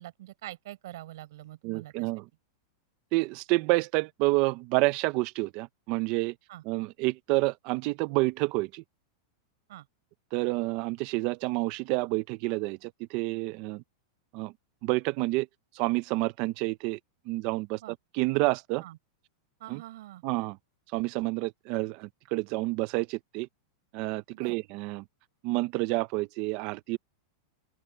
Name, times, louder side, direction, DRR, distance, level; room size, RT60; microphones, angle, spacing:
voice 1, 0.0-2.1 6.5-6.6 9.7-9.9 17.7-18.0 18.8-19.0 19.6-20.2 24.3-24.6, right 15 dB, 60° right, 5.5 m, -44 dB
voice 2, 1.6-2.2 3.1-6.3 6.7-8.8 10.3-13.8 14.3-14.5 14.8-15.5 15.8-17.0 17.3-17.8 18.1-18.8 19.7-19.8 20.2-20.6 20.9-23.5 23.9-25.0 25.4-27.0, right 22 dB, 35° right, 0.7 m, -29 dB
supercardioid pair, 175°, 2 cm